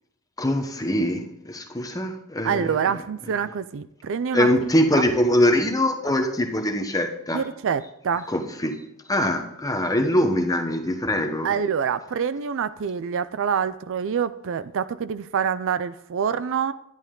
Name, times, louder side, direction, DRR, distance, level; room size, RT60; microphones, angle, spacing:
voice 1, 0.4-2.8 4.3-7.4 8.3-8.8 9.1-11.5, left 1 dB, 15° left, 5 dB, 1.0 m, -23 dB
voice 2, 2.4-4.5 7.3-8.3 11.4-16.7, right 7 dB, 60° right, 14 dB, 0.4 m, -26 dB
10.5 x 10.5 x 3.8 m, 0.81 s
head